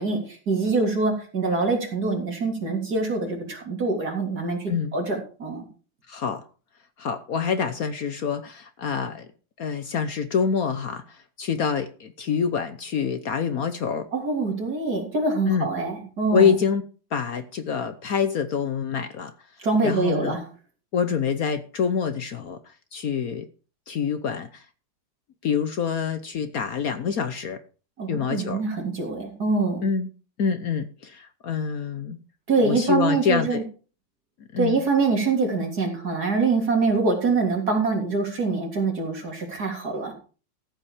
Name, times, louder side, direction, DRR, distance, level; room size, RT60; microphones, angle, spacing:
voice 1, 0.0-5.6 14.1-16.6 19.6-20.4 28.0-29.8 32.5-33.6 34.6-40.1, right 3 dB, 55° right, 3.8 m, -24 dB
voice 2, 6.1-6.4 7.0-9.3 9.6-14.1 15.5-15.7 16.3-16.8 17.1-19.3 19.8-20.4 20.9-22.6 22.9-23.4 23.9-24.6 25.4-27.6 28.1-28.6 29.8-30.1 30.4-32.2 32.6-33.6 34.5-34.8, left 6 dB, 55° left, 1.2 m, -26 dB
14.5 x 8.3 x 4.9 m
omnidirectional pair, 2.0 m